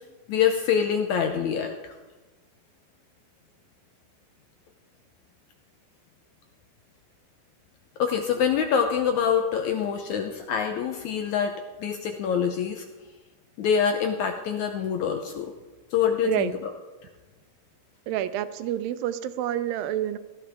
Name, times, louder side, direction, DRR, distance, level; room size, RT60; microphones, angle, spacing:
voice 1, 0.3-1.9 8.0-12.8 13.6-15.5 15.9-16.7, left 7 dB, 75° left, 5 dB, 1.8 m, -25 dB
voice 2, 18.1-20.2, right 11 dB, 85° right, 12 dB, 2.4 m, -28 dB
17.0 x 12.5 x 3.5 m, 1.2 s
omnidirectional pair, 4.1 m